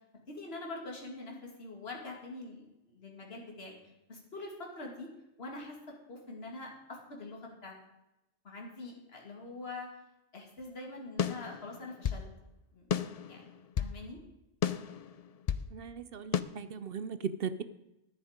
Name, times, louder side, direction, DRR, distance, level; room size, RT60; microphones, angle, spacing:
voice 1, 0.3-3.7 4.1-5.1 5.4-5.8 6.1-7.7 8.4-9.9 10.3-12.3 12.7-12.9 13.3-13.5 13.8-14.2, left 2 dB, 55° left, 0 dB, 2.5 m, -44 dB
sound 1, 11.2-12.3 12.9-14.0 14.6-15.7 16.3-16.4, left 8 dB, 70° left, 0.3 m, -32 dB
voice 2, 15.7-17.6, right 6 dB, 60° right, 13 dB, 0.7 m, -38 dB
10.5 x 10.5 x 5.1 m, 0.93 s
omnidirectional pair, 1.2 m